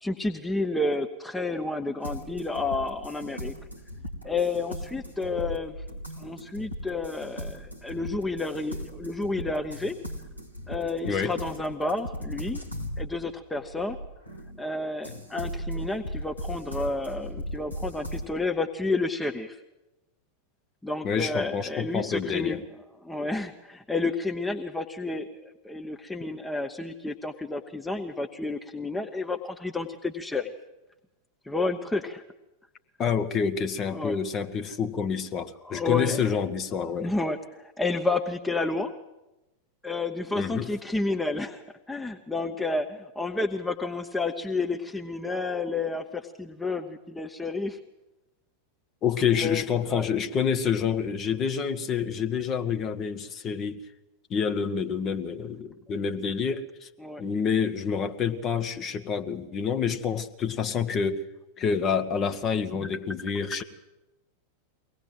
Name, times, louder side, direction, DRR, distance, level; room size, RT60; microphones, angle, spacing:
voice 1, 0.0-3.5 4.2-5.8 6.2-9.9 10.7-12.6 13.0-14.0 14.6-19.6 20.8-22.6 23.0-30.5 31.4-32.2 33.9-34.2 35.6-36.4 37.0-38.9 39.8-47.8 49.3-50.1 57.0-57.2, left 3 dB, 5° left, 7 dB, 1.1 m, -30 dB
sound 1, 2.0-14.6 15.0-18.3, equal, 85° left, 2.2 m, -38 dB
voice 2, 21.0-22.6 33.0-37.1 40.3-40.7 49.0-53.8 54.3-56.9 57.2-61.2 61.6-63.6, left 6 dB, 30° left, 8 dB, 1.4 m, -28 dB
23.0 x 18.0 x 7.8 m, 0.99 s
figure-of-eight pair, 90°, 0 cm